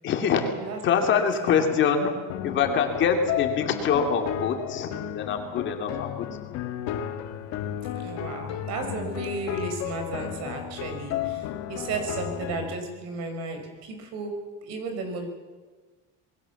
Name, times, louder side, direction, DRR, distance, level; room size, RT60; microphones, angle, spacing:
voice 1, 0.0-0.5 0.8-2.1 2.4-6.6, left 6 dB, 40° left, 4 dB, 2.8 m, -25 dB
voice 2, 1.1-1.6 7.9-15.3, right 3 dB, 60° right, 6 dB, 5.5 m, -34 dB
sound 1, 2.3-12.7, left 10 dB, 60° left, 1.9 m, -33 dB
26.5 x 21.5 x 7.2 m, 1.3 s
cardioid pair, 180°, 30 cm